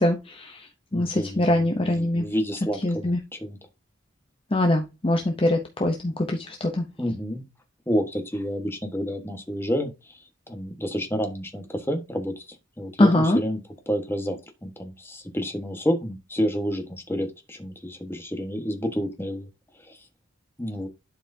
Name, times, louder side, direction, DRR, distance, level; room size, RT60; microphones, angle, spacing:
voice 1, 0.0-2.3 2.8-3.2 4.5-6.9 13.0-13.4, left 1 dB, 30° left, 0.7 m, -23 dB
voice 2, 0.9-3.1 3.4-3.6 7.0-7.4 7.9-9.9 10.5-12.3 12.8-13.6 13.9-14.4 14.6-19.4 20.6-20.9, equal, 10° left, 1.4 m, -29 dB
11.5 x 4.8 x 2.7 m
head